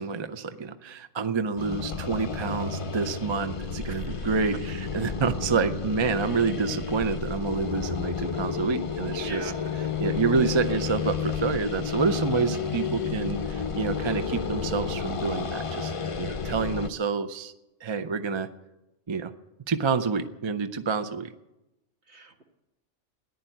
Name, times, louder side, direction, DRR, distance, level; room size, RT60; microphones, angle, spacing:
voice 1, 0.0-9.4 10.0-15.9 16.2-17.5 17.8-18.5 19.1-19.3 19.7-21.3, right 5 dB, 30° right, 10 dB, 0.5 m, -28 dB
sound 1, 1.6-16.9, left 6 dB, 35° left, 0.6 m, -31 dB
voice 2, 3.9-4.3 9.1-9.9 22.1-22.4, right 3 dB, 60° right, 3 dB, 1.9 m, -42 dB
14.5 x 10.5 x 9.1 m, 0.97 s
omnidirectional pair, 1.3 m